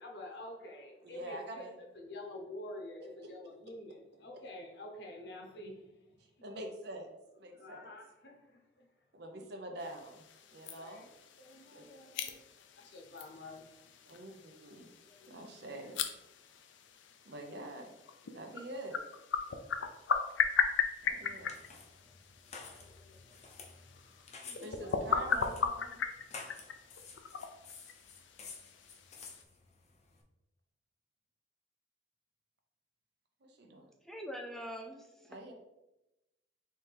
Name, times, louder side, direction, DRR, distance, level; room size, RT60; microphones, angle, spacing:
voice 1, 0.0-6.4 7.5-8.9 10.7-11.1 11.4-12.4 12.7-14.0 15.0-16.0 21.0-21.5 21.9-25.0, left 1 dB, 65° left, 1 dB, 0.9 m, -50 dB
voice 2, 1.0-1.7 6.4-7.1 7.4-7.9 9.1-10.2 10.5-11.1 11.7-11.9 14.1-14.9 15.3-16.0 17.2-17.9 18.3-19.0 21.0-21.5 24.6-26.0 33.4-33.9 35.3-35.5, right 1 dB, 65° right, 3 dB, 0.8 m, -45 dB
sound 1, 9.8-29.4, left 6 dB, 80° left, 0.4 m, -38 dB
sound 2, 21.0-30.2, left 4 dB, 40° left, 0.6 m, -52 dB
voice 3, 34.0-35.4, equal, ahead, 3 dB, 0.3 m, -43 dB
4.3 x 3.3 x 3.3 m, 0.94 s
head